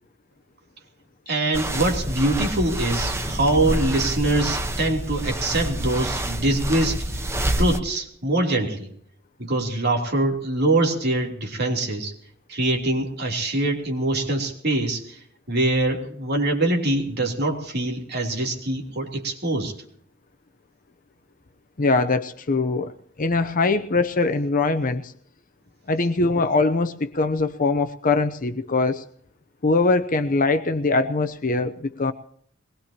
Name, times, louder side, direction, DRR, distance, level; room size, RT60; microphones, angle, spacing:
voice 1, 1.3-7.0 7.6-8.9 9.4-12.1 12.5-15.2 15.5-19.7, right 2 dB, 55° right, 1 dB, 3.2 m, -23 dB
sound 1, 1.5-7.8, right 1 dB, 15° right, 1.0 m, -27 dB
voice 2, 21.8-25.1 25.9-29.1 29.6-32.1, left 3 dB, 45° left, 8 dB, 0.7 m, -22 dB
22.0 x 20.5 x 2.9 m, 0.64 s
head